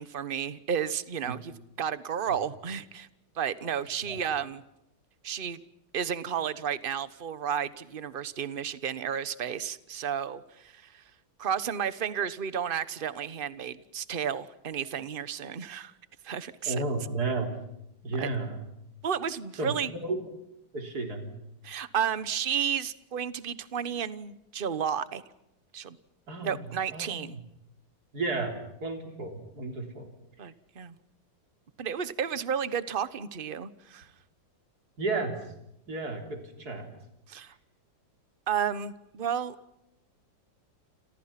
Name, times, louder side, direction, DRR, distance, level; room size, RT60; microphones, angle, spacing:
voice 1, 0.0-1.5 1.8-3.1 3.4-4.6 5.2-5.6 5.9-11.0 11.4-15.9 16.2-16.8 18.2-18.3 19.0-19.9 21.6-25.2 25.7-26.0 26.4-27.4 30.4-31.0 31.8-34.1 37.3-37.5 38.5-39.6, right 8 dB, 35° right, 14 dB, 1.0 m, -32 dB
voice 2, 16.7-17.5 18.0-18.6 19.6-20.2 20.7-21.4 26.3-26.6 26.9-27.4 28.1-30.1 35.0-35.3 35.9-36.9, right 3 dB, 55° right, 3 dB, 4.2 m, -33 dB
29.5 x 27.5 x 5.9 m, 0.85 s
omnidirectional pair, 2.1 m